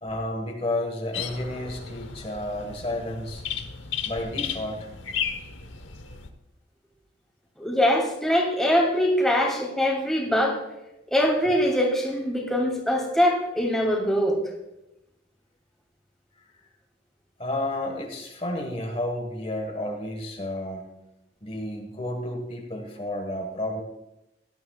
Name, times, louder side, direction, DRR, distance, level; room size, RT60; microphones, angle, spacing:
voice 1, 0.0-3.4 4.0-4.9 17.4-20.8 21.4-23.8, left 1 dB, 30° left, 3 dB, 1.4 m, -31 dB
sound 1, 1.1-6.3, left 7 dB, 80° left, 1.0 m, -34 dB
voice 2, 7.6-10.6 11.1-14.4, equal, ahead, -1 dB, 2.5 m, -23 dB
17.5 x 12.0 x 2.3 m, 0.91 s
head